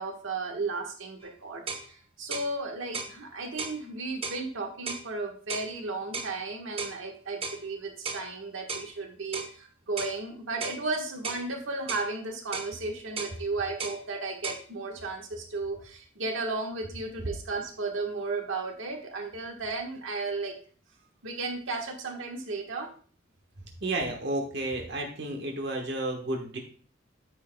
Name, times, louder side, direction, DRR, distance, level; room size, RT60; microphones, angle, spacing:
voice 1, 0.0-20.6 21.2-22.9, right 3 dB, 90° right, 2 dB, 1.4 m, -34 dB
sound 1, 1.2-1.3 1.7-1.9 2.3-2.5 2.9-3.2 3.6-3.8 4.2-4.4 4.9-5.1 5.5-5.7 6.1-6.3 6.8-7.0 7.4-7.6 8.0-8.3 8.7-8.9 9.3-9.5 10.0-10.2 10.6-10.8 11.2-11.5 11.9-12.1 12.5-12.7 13.2-13.4 13.8-14.0 14.4-14.6, right 4 dB, 30° right, 0.7 m, -35 dB
voice 2, 23.8-26.6, right 2 dB, 60° right, 2 dB, 1.3 m, -31 dB
9.0 x 7.4 x 2.2 m, 0.42 s
head